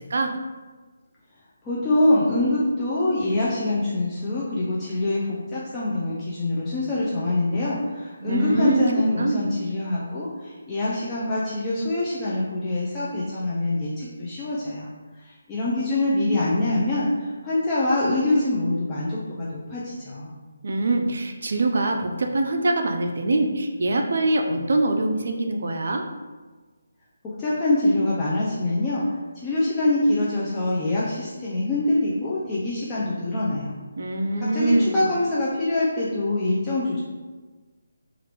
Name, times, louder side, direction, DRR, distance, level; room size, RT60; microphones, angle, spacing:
voice 1, 1.6-14.9 15.2-20.3 27.2-29.1 29.4-33.7 34.4-37.0, left 2 dB, 15° left, -8 dB, 0.4 m, -24 dB
voice 2, 8.2-8.9 9.2-9.5 20.6-26.0 34.0-35.0, right 2 dB, 65° right, 3 dB, 0.4 m, -23 dB
2.9 x 2.4 x 3.3 m, 1.3 s
figure-of-eight pair, 155°, 0 cm